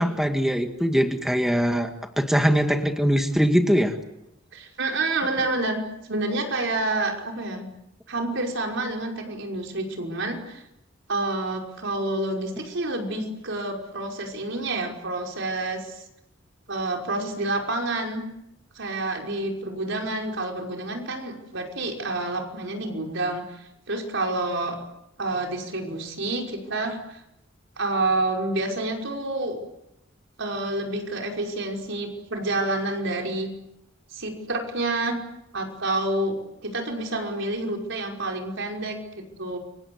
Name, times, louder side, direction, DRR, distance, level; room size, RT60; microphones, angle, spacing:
voice 1, 0.0-1.9 2.2-4.0, equal, ahead, 5 dB, 1.9 m, -22 dB
voice 2, 4.5-7.7 8.1-10.6 11.1-16.0 16.7-18.2 18.7-24.8 25.2-27.2 27.8-29.6 30.4-33.5 34.1-35.2 35.5-39.6, right 2 dB, 65° right, 2 dB, 5.5 m, -28 dB
29.5 x 25.0 x 8.1 m, 0.86 s
head